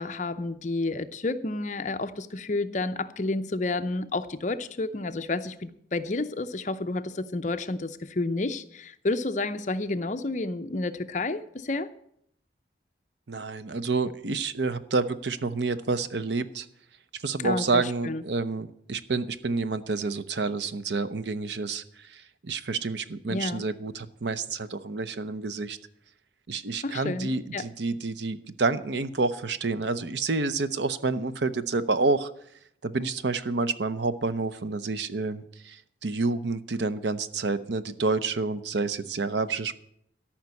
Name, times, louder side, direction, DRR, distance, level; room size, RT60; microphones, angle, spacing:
voice 1, 0.0-11.9 17.4-18.2 23.3-23.6 26.8-27.7, left 2 dB, 40° left, 0.6 m, -30 dB
voice 2, 13.3-16.7 17.2-21.8 22.1-25.8 26.5-32.3 32.8-39.7, right 3 dB, 70° right, 0.7 m, -29 dB
13.5 x 5.8 x 9.6 m
head